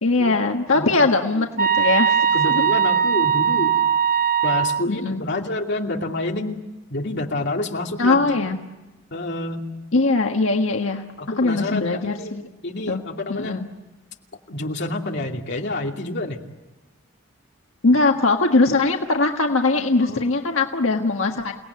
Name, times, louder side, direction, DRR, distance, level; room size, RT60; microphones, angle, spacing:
voice 1, 0.0-2.6 4.9-5.2 8.0-8.6 9.9-11.0 11.4-12.4 12.9-13.0 13.3-13.7 17.8-21.5, left 3 dB, 85° left, 3 dB, 1.6 m, -21 dB
voice 2, 0.7-1.4 2.3-3.8 4.4-6.6 6.9-8.2 9.1-9.7 11.2-12.3 12.6-13.6 14.5-16.4 20.0-20.3, left 2 dB, 60° left, 1 dB, 2.7 m, -28 dB
sound 1, 1.6-4.8, right 8 dB, 40° right, 1.0 m, -19 dB
29.5 x 18.5 x 9.5 m, 1.1 s
head